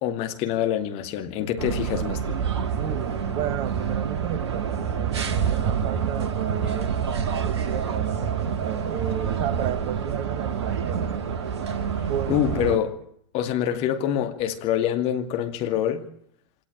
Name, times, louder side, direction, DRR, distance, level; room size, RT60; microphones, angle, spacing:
voice 1, 0.0-2.4 12.3-13.0 13.3-16.1, left 10 dB, 40° left, 2.4 m, -25 dB
sound 1, 1.6-12.8, right 7 dB, 60° right, 2.1 m, -27 dB
voice 2, 2.8-7.0 7.4-8.2 8.6-11.1 12.1-12.8, right 11 dB, 40° right, 1.6 m, -33 dB
25.0 x 18.0 x 8.9 m
figure-of-eight pair, 95°, 16 cm